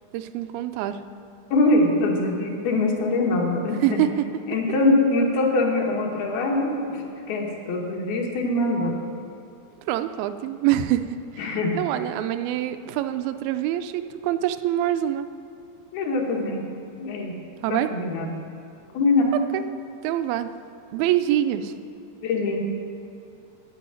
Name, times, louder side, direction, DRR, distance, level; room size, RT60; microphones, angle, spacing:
voice 1, 0.1-1.0 3.8-4.1 9.9-11.2 11.8-15.3 17.6-17.9 19.5-19.6 20.0-20.5 20.9-21.7, right 13 dB, 80° right, 10 dB, 2.3 m, -25 dB
voice 2, 1.5-4.0 4.5-9.1 11.4-11.8 15.9-16.7 17.0-17.4 17.7-18.3 18.9-19.3 22.2-22.6, left 2 dB, 80° left, -1 dB, 3.3 m, -23 dB
12.5 x 5.5 x 8.9 m, 2.6 s
omnidirectional pair, 4.3 m